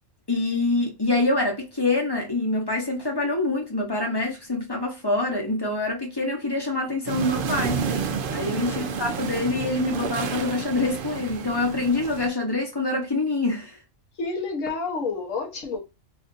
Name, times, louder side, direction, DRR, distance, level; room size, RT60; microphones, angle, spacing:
voice 1, 0.3-7.8 8.3-13.8, left 2 dB, 25° left, 0.7 m, -25 dB
sound 1, 7.1-12.3, right 6 dB, 60° right, 0.6 m, -30 dB
voice 2, 14.2-15.8, left 4 dB, 75° left, 1.4 m, -29 dB
3.5 x 2.5 x 2.4 m
omnidirectional pair, 1.3 m